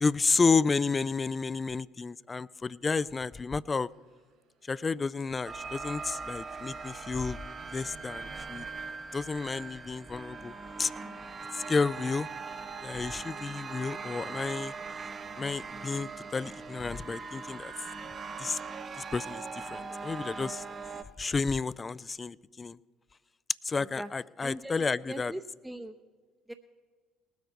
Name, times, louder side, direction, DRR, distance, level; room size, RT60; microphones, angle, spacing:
voice 1, 0.0-3.9 4.7-7.4 7.7-8.7 9.1-10.9 11.5-12.3 12.8-14.7 15.4-17.7 18.4-18.6 19.0-20.6 21.2-22.8 23.6-25.3, left 4 dB, 30° left, 21 dB, 0.3 m, -31 dB
sound 1, 3.9-9.7, right 5 dB, 60° right, 3.5 m, -62 dB
sound 2, 5.4-21.0, right 4 dB, 40° right, 0.9 m, -41 dB
voice 2, 24.4-24.7 25.1-25.9 26.5-26.6, right 1 dB, 5° right, 6 dB, 0.7 m, -40 dB
19.5 x 8.0 x 5.2 m, 1.4 s
hypercardioid pair, 55°, 0 cm